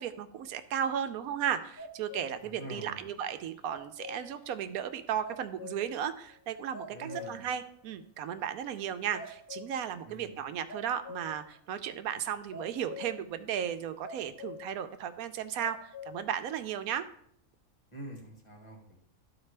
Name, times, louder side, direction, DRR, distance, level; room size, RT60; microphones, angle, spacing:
voice 1, 0.0-17.1, right 9 dB, 85° right, 10 dB, 1.1 m, -35 dB
sound 1, 1.8-2.5 2.9-3.0 3.6-4.4 4.9-5.0 5.2-6.1 6.4-6.5 6.7-7.6 7.9-8.0 8.7-8.9 9.1-9.9 10.7-11.5 12.5-13.3 14.0-14.7 15.2-15.3 15.6-16.3 16.7-16.8, left 3 dB, 45° left, 1.2 m, -45 dB
voice 2, 2.4-3.1 6.9-7.4 10.0-10.3 17.9-19.0, right 1 dB, 20° left, 0 dB, 1.6 m, -45 dB
13.0 x 4.4 x 3.3 m, 0.67 s
omnidirectional pair, 1.5 m